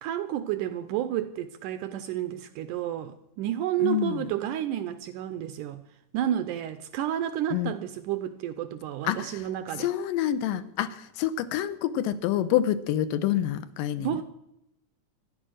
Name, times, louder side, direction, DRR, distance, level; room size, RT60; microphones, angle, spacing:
voice 1, 0.0-5.8 6.1-9.9 14.0-14.2, right 11 dB, 80° right, 1.9 m, -31 dB
voice 2, 3.8-4.3 7.5-7.7 9.0-9.4 9.8-14.2, left 11 dB, 80° left, 2.2 m, -27 dB
14.0 x 11.0 x 6.3 m
omnidirectional pair, 4.1 m